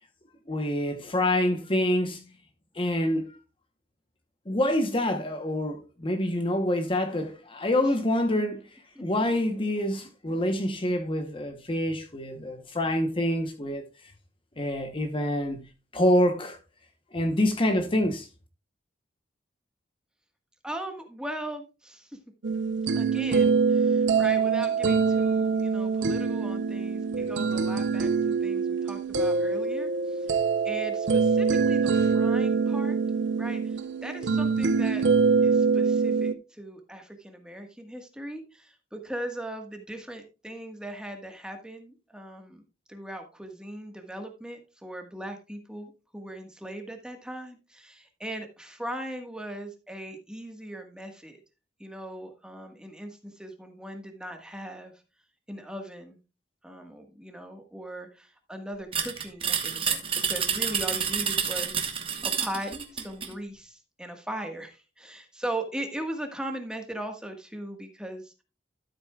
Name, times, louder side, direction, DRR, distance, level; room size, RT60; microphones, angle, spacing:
voice 1, 0.5-2.2 2.7-3.4 4.5-14.1 14.6-16.6 17.1-18.3, left 1 dB, 30° left, 1.0 m, -26 dB
voice 2, 20.6-22.2 22.9-28.1 28.4-30.4 30.6-33.0 33.4-35.1 35.4-42.6 42.9-51.4 51.8-54.9 55.5-56.2 56.6-68.3, right 1 dB, 5° right, 1.5 m, -39 dB
sound 1, 22.4-36.3, right 5 dB, 90° right, 0.7 m, -24 dB
sound 2, 58.9-63.3, right 7 dB, 30° right, 1.2 m, -29 dB
13.0 x 8.0 x 2.3 m
head